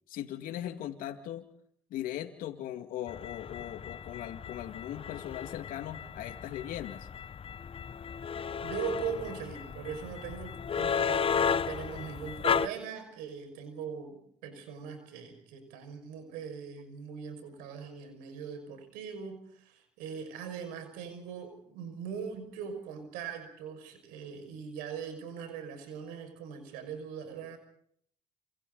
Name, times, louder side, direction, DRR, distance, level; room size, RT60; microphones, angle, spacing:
voice 1, 0.1-1.5 1.9-7.1, left 11 dB, 75° left, 6 dB, 2.1 m, -39 dB
sound 1, 3.1-12.7, left 7 dB, 40° left, 0.8 m, -34 dB
voice 2, 8.5-27.6, right 7 dB, 85° right, 8 dB, 5.8 m, -40 dB
28.0 x 27.0 x 4.0 m, 0.64 s
supercardioid pair, 65°, 15 cm